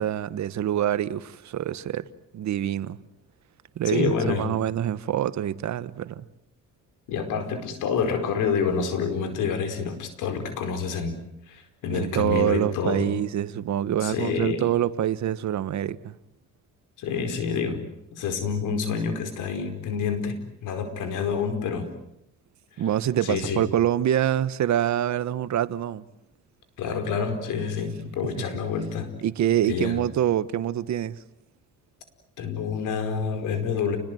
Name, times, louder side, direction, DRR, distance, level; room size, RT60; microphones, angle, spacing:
voice 1, 0.0-2.1 2.3-3.0 3.8-6.2 11.9-16.2 22.8-26.0 29.2-31.2, right 11 dB, 65° right, 1.4 m, -25 dB
voice 2, 3.8-4.5 7.1-11.2 11.5-13.1 14.0-14.6 17.0-17.8 18.1-21.9 23.2-23.6 26.8-29.1 29.7-30.0 32.4-34.0, left 6 dB, 90° left, 4.8 m, -28 dB
29.5 x 21.0 x 9.3 m
cardioid pair, 90°, 30 cm